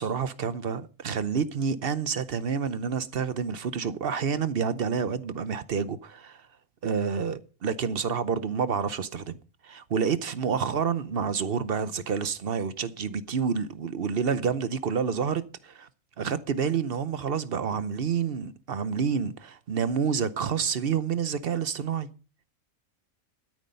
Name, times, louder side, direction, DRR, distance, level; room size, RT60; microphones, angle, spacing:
voice 1, 0.0-6.4 6.8-9.4 9.6-15.9 16.2-22.1, right 6 dB, 50° right, 0.8 m, -28 dB
12.5 x 9.8 x 5.3 m
omnidirectional pair, 1.4 m